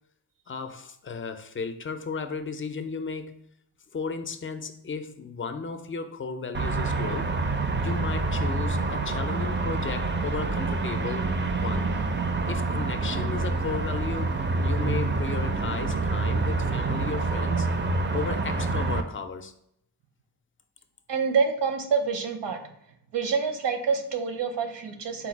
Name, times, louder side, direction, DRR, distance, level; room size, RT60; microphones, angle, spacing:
voice 1, 0.5-3.4 3.9-7.3 7.8-11.9 12.5-14.3 14.6-17.7 18.1-19.5, left 5 dB, 30° left, 0.4 m, -34 dB
Distant Highway Ambient, 6.5-19.0, right 3 dB, 30° right, 0.4 m, -27 dB
voice 2, 21.1-22.6 23.1-25.3, right 5 dB, 75° right, 0.8 m, -27 dB
4.0 x 2.3 x 4.4 m
cardioid pair, 65°, 42 cm